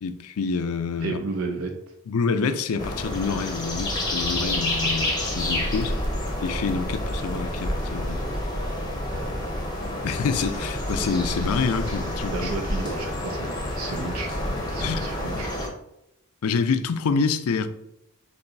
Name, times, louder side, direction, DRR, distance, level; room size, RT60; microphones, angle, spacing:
voice 1, 0.0-1.2 2.1-6.0 6.4-8.2 10.0-12.5 14.8-15.1 15.3-15.5 16.4-17.7, left 5 dB, 80° left, 0.4 m, -27 dB
voice 2, 1.0-1.7 9.1-9.3 12.3-14.3 14.7-15.6, right 3 dB, 75° right, 0.6 m, -32 dB
sound 1, 2.8-15.7, left 1 dB, 20° left, 0.7 m, -28 dB
6.8 x 2.7 x 2.6 m
head